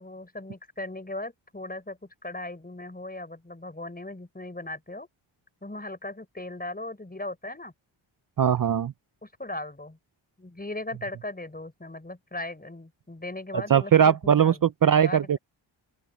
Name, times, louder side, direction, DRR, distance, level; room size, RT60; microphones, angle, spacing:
voice 1, 0.0-5.1 5.6-7.7 9.2-10.0 10.4-14.7 15.0-15.4, left 2 dB, 20° left, 6.1 m, -38 dB
voice 2, 8.4-8.9 13.5-15.4, right 8 dB, 45° right, 0.7 m, -20 dB
open air
cardioid pair, 60°, 48 cm